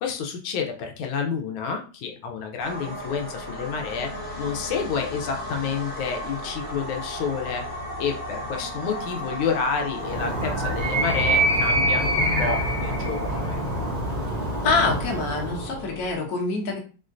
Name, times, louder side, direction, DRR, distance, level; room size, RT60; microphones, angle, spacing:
voice 1, 0.0-4.1 4.4-7.6 8.0-13.6, left 6 dB, 85° left, 3 dB, 1.5 m, -29 dB
sound 1, 2.6-16.2, equal, 35° left, 0.9 m, -36 dB
Animal, 10.0-15.8, right 1 dB, 75° right, 0.3 m, -25 dB
voice 2, 14.6-16.8, left 3 dB, 60° left, 1 dB, 1.2 m, -25 dB
4.4 x 2.1 x 2.5 m, 0.36 s
omnidirectional pair, 2.3 m